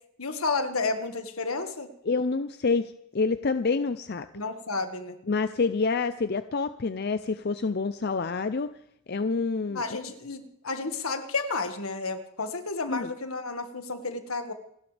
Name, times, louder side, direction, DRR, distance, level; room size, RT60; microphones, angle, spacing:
voice 1, 0.2-1.9 4.3-5.1 9.7-14.5, left 3 dB, 80° left, 7 dB, 1.7 m, -31 dB
voice 2, 2.0-4.3 5.3-8.7 9.1-10.0 12.9-13.1, left 4 dB, 50° left, 11 dB, 0.5 m, -27 dB
28.5 x 12.0 x 3.4 m, 0.73 s
head